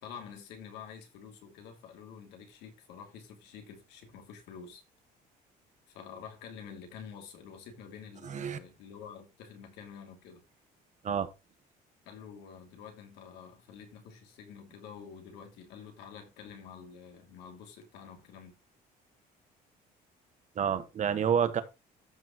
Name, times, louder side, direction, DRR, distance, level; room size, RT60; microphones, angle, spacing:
voice 1, 0.0-4.8 5.9-10.4 12.0-18.6, left 7 dB, 90° left, 2.7 m, -48 dB
voice 2, 8.2-8.6 11.0-11.3 20.5-21.6, right 7 dB, 45° right, 1.5 m, -28 dB
13.5 x 6.1 x 3.1 m
cardioid pair, 110°, 17 cm